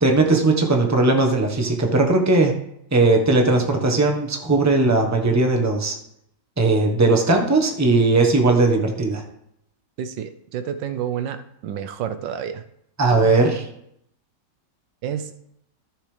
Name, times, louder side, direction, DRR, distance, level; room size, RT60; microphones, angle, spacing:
voice 1, 0.0-2.5 2.9-5.9 6.6-9.2 13.0-13.7, right 3 dB, 10° right, 2 dB, 1.0 m, -18 dB
voice 2, 10.0-12.6 15.0-15.3, right 9 dB, 85° right, 10 dB, 1.4 m, -29 dB
13.5 x 6.5 x 3.3 m, 0.76 s
omnidirectional pair, 1.9 m